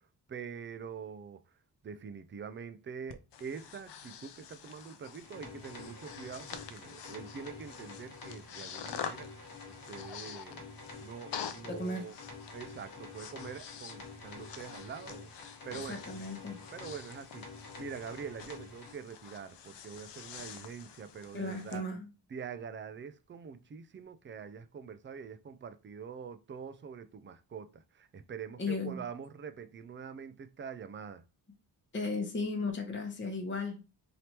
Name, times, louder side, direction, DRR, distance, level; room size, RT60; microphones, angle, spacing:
voice 1, 0.3-1.4 1.8-9.3 9.7-10.7 11.0-12.2 12.5-16.0 16.7-17.5 17.8-21.8 22.3-31.2, right 6 dB, 30° right, 0.4 m, -45 dB
Breathing, 3.1-21.8, left 8 dB, 70° left, 0.6 m, -47 dB
sound 1, 5.2-18.9, left 3 dB, 50° left, 1.1 m, -48 dB
voice 2, 11.6-12.1 15.7-16.6 21.3-22.1 28.6-29.1 31.9-33.8, left 3 dB, 25° left, 0.8 m, -35 dB
3.3 x 2.9 x 2.9 m
cardioid pair, 85°, 44 cm